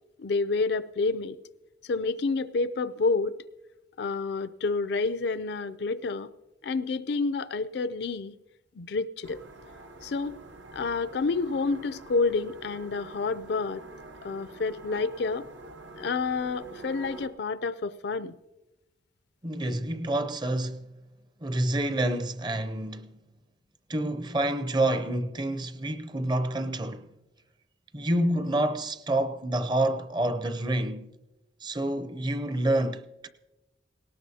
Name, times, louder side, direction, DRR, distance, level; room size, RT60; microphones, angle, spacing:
voice 1, 0.2-1.4 1.8-3.4 4.0-6.3 6.6-8.3 8.8-9.4 10.0-10.4 10.7-13.8 14.2-15.5 16.0-18.3, left 4 dB, 65° left, 0.4 m, -29 dB
sound 1, 9.2-17.3, right 2 dB, 80° right, 1.1 m, -46 dB
voice 2, 19.4-20.9 21.4-23.2 23.9-27.1 27.9-31.1 31.6-33.3, right 1 dB, 25° right, 0.6 m, -28 dB
18.5 x 18.0 x 2.8 m
head